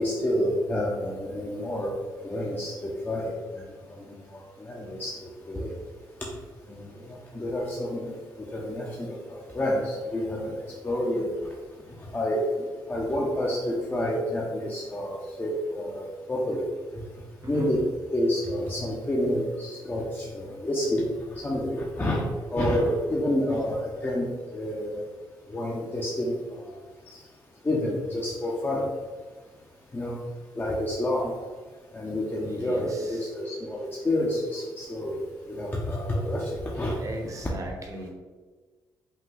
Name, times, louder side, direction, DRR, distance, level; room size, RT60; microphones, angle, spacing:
voice 1, 0.0-1.9 2.2-5.7 6.7-11.3 12.0-17.0 17.4-17.8 18.1-22.2 22.5-25.0 25.5-26.8 27.1-27.2 27.6-28.9 29.9-30.1 30.5-31.3 31.9-37.0, left 1 dB, 25° left, -4 dB, 0.9 m, -29 dB
voice 2, 32.5-33.3 37.0-38.1, right 2 dB, 40° right, 2 dB, 1.0 m, -38 dB
5.5 x 2.4 x 3.8 m, 1.4 s
cardioid pair, 75°, 8 cm